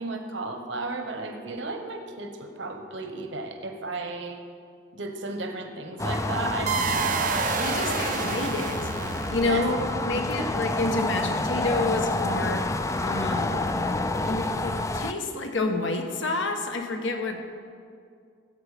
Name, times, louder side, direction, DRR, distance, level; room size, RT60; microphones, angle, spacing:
voice 1, 0.0-4.4 4.9-7.5 9.4-9.7 10.4-10.5, right 2 dB, 70° right, 4 dB, 1.2 m, -34 dB
sound 1, 6.0-15.1, left 2 dB, 15° left, 0.3 m, -28 dB
sound 2, 6.7-9.8, right 6 dB, 40° right, 0.5 m, -29 dB
voice 2, 7.6-8.9 9.3-12.6 13.0-13.7 14.2-17.4, left 2 dB, 80° left, 4 dB, 1.3 m, -29 dB
15.5 x 7.9 x 5.1 m, 2.2 s
head